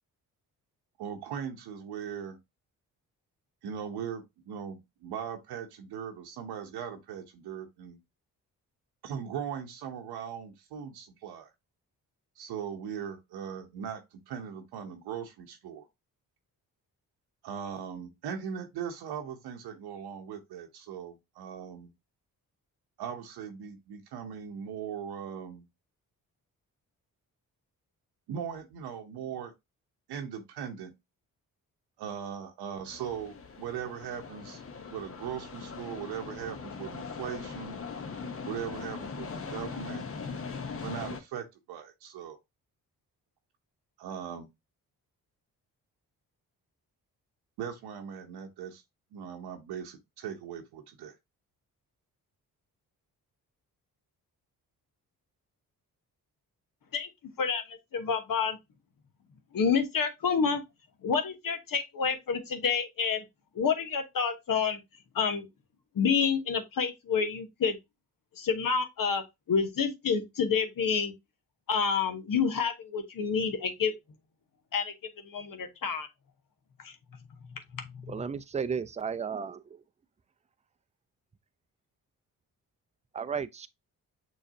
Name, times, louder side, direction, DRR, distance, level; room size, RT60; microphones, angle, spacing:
voice 1, 1.0-2.4 3.6-8.0 9.0-11.5 12.4-15.9 17.4-21.9 23.0-25.7 28.3-29.5 30.1-30.9 32.0-34.6 34.9-37.8 38.5-40.0 40.8-42.4 44.0-44.5 47.6-48.8 49.1-51.2, right 8 dB, 85° right, 0.8 m, -39 dB
sound 1, 32.9-41.2, left 5 dB, 35° left, 0.9 m, -40 dB
voice 2, 57.4-58.6 59.5-60.6 61.0-63.2 63.5-64.8 65.1-65.5 65.9-67.8 68.3-71.1 71.7-73.9 74.7-74.9 75.2-76.1 76.8-77.0 77.4-78.2, left 6 dB, 60° left, 1.1 m, -29 dB
voice 3, 78.1-79.8 83.1-83.7, right 6 dB, 20° right, 0.5 m, -34 dB
6.3 x 3.2 x 2.6 m
cardioid pair, 60°, 38 cm